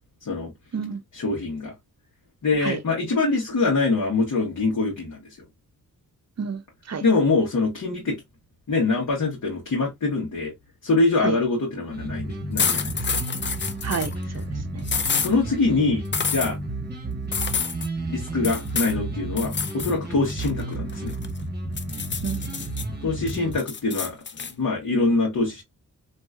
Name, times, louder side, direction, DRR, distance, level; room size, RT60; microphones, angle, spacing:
voice 1, 0.2-0.5 1.1-1.7 2.4-5.4 7.0-8.2 8.7-10.5 10.8-13.1 15.2-16.0 16.3-16.6 18.1-21.1 23.0-25.6, left 3 dB, 55° left, 1.2 m, -24 dB
sound 1, 11.9-23.6, right 2 dB, 25° right, 1.1 m, -32 dB
sound 2, 12.6-14.1 14.9-15.3 16.1-16.5 17.3-17.9 18.4-19.0 19.4-19.9 20.3-21.4 21.8-22.8 23.3-24.5, left 6 dB, 30° left, 0.5 m, -28 dB
voice 2, 13.8-14.4 14.7-14.8 22.2-22.7, right 6 dB, 45° right, 0.7 m, -30 dB
3.0 x 2.6 x 2.3 m
cardioid pair, 45°, 36 cm